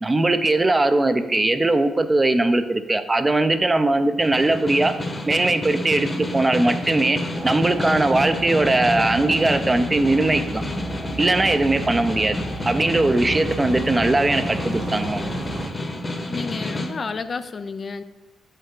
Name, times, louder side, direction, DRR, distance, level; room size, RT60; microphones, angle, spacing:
voice 1, 0.0-4.9 5.3-10.6 11.2-12.4 12.7-15.2, right 2 dB, 25° right, 10 dB, 0.6 m, -20 dB
Snare drum, 4.2-16.9, left 1 dB, 25° left, 1.0 m, -29 dB
sound 1, 7.3-15.7, right 2 dB, 50° right, 0.9 m, -33 dB
voice 2, 16.3-18.0, left 4 dB, 45° left, 11 dB, 0.4 m, -30 dB
7.9 x 5.4 x 3.8 m, 1.2 s
supercardioid pair, 65°, 0 cm